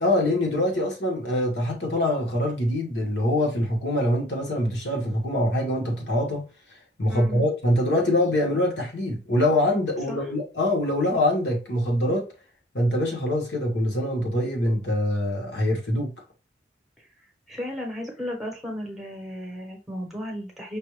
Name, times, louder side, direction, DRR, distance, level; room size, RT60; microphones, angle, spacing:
voice 1, 0.0-6.4 7.0-12.3 12.7-16.1, left 1 dB, 70° left, 1.4 m, -24 dB
voice 2, 7.1-7.4 10.1-10.2 17.5-20.8, equal, ahead, 1.1 m, -34 dB
5.3 x 2.5 x 3.2 m
head